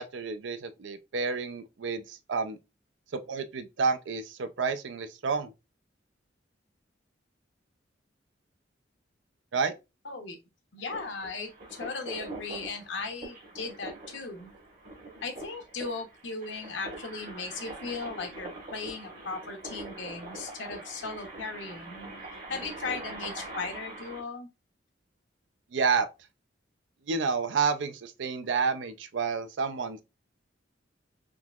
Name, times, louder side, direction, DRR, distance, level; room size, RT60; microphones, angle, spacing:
voice 1, 0.0-2.6 3.1-5.5 9.5-9.7 25.7-26.1 27.1-30.0, right 5 dB, 75° right, 0.5 m, -30 dB
voice 2, 10.0-10.4 10.7-14.5 15.2-22.1 22.5-24.5, left 4 dB, 80° left, 0.9 m, -37 dB
sound 1, 10.9-24.2, right 2 dB, 50° right, 1.2 m, -43 dB
3.7 x 2.9 x 2.3 m
head